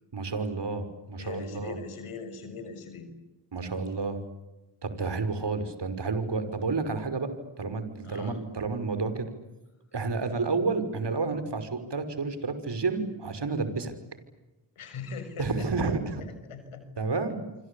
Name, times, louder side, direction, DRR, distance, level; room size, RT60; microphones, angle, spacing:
voice 1, 0.1-1.8 3.5-4.2 4.8-7.3 7.6-9.3 9.9-13.9 15.4-16.2 17.0-17.4, right 4 dB, 55° right, 10 dB, 5.7 m, -30 dB
voice 2, 1.1-3.1 8.0-8.4 14.8-15.7 16.2-16.8, left 5 dB, 80° left, 9 dB, 6.4 m, -41 dB
26.5 x 25.5 x 8.6 m, 1.1 s
cardioid pair, 55°, 49 cm